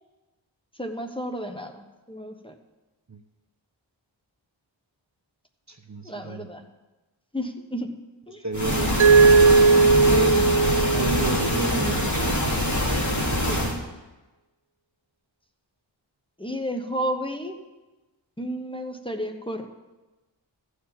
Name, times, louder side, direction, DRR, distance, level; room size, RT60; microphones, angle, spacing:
voice 1, 0.8-2.5 6.0-6.6 7.3-7.9 8.3-8.4 10.1-10.5 10.7-11.2 13.5-13.6 16.4-17.6 18.4-19.6, equal, 10° left, 4 dB, 1.1 m, -32 dB
voice 2, 5.7-6.5 8.4-9.0 11.0-12.0, right 3 dB, 35° right, 5 dB, 0.9 m, -31 dB
sound 1, 8.5-13.8, equal, 40° left, 2.5 m, -24 dB
Mallet percussion, 9.0-11.9, right 4 dB, 80° right, 0.7 m, -18 dB
14.0 x 5.0 x 8.7 m, 1.1 s
wide cardioid pair, 65°, 46 cm